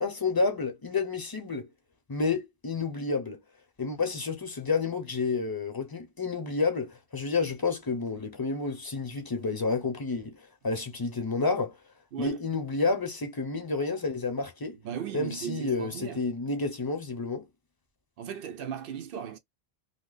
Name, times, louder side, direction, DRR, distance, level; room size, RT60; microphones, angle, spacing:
voice 1, 0.0-1.7 2.1-3.4 3.8-11.8 12.2-14.8 15.1-17.4, left 4 dB, 25° left, 0.7 m, -30 dB
voice 2, 12.1-12.4 14.8-16.3 18.2-19.4, right 8 dB, 70° right, 0.8 m, -37 dB
2.8 x 2.2 x 3.9 m
omnidirectional pair, 1.0 m